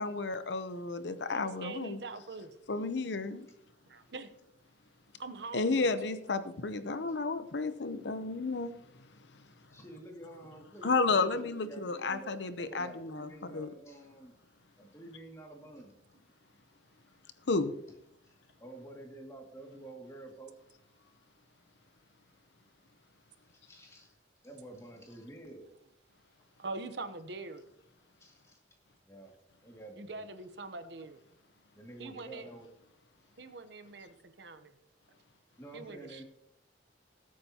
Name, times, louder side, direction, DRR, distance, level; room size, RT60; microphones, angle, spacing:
voice 1, 0.0-2.0 2.7-3.5 5.5-8.7 10.8-13.3 13.5-13.7 17.5-17.7, left 3 dB, 70° left, 0.8 m, -32 dB
voice 2, 1.3-2.6 3.9-4.3 5.2-6.0 26.6-27.6 30.0-31.2 32.0-32.5 33.4-34.7 35.7-36.2, right 3 dB, 65° right, 0.9 m, -43 dB
voice 3, 9.7-14.3 14.8-15.9 17.1-17.2 18.2-20.5 23.5-24.1 24.4-25.7 28.2-28.6 29.1-29.3 29.6-30.3 31.7-32.7 35.6-36.2, right 2 dB, 15° left, 2.2 m, -49 dB
20.0 x 8.6 x 2.9 m
head